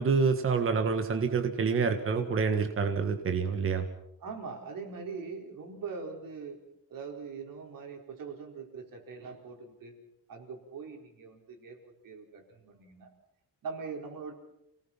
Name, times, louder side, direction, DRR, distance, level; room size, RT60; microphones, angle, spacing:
voice 1, 0.0-3.8, right 5 dB, 35° right, 6 dB, 1.6 m, -27 dB
voice 2, 4.2-6.6 6.9-10.0 10.3-13.1 13.6-14.3, right 5 dB, 60° right, 3 dB, 4.5 m, -42 dB
28.5 x 18.5 x 5.8 m, 0.81 s
cardioid pair, 175°, 37 cm